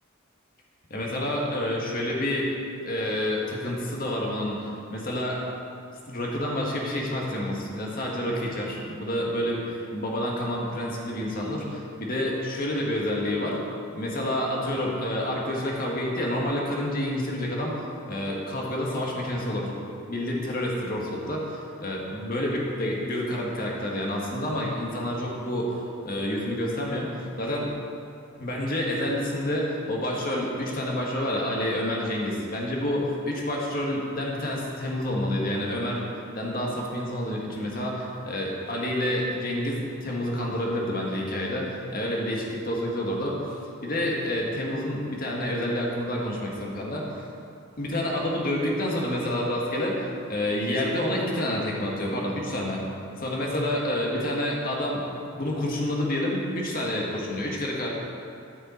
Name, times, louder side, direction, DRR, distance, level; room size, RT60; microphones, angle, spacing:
voice 1, 0.9-2.5 2.8-5.4 6.1-13.6 13.9-17.8 18.1-19.7 20.1-27.1 27.4-27.7 28.4-36.1 36.4-43.6 43.8-47.3 47.8-52.8 53.2-55.0 55.3-57.9, left 1 dB, 45° left, -2 dB, 1.7 m, -28 dB
13.0 x 6.8 x 4.4 m, 2.5 s
head